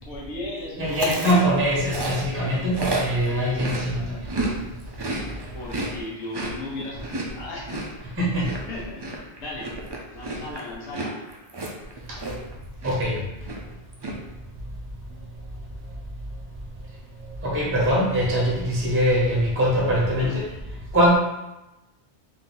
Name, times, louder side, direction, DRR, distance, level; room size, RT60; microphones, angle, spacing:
voice 1, 0.1-1.5 5.5-8.1 8.7-9.7 10.1-11.1 20.2-20.4, left 1 dB, 85° left, -5 dB, 1.3 m, -36 dB
voice 2, 0.8-4.3 8.2-8.5 12.8-13.2 17.4-20.5 20.9-21.2, equal, 15° right, -4 dB, 0.8 m, -22 dB
Chewing mastication, 0.9-4.5 4.8-12.5 12.8-13.2 13.4-14.1, right 2 dB, 35° right, 0.4 m, -32 dB
3.8 x 2.7 x 3.9 m, 0.99 s
omnidirectional pair, 1.1 m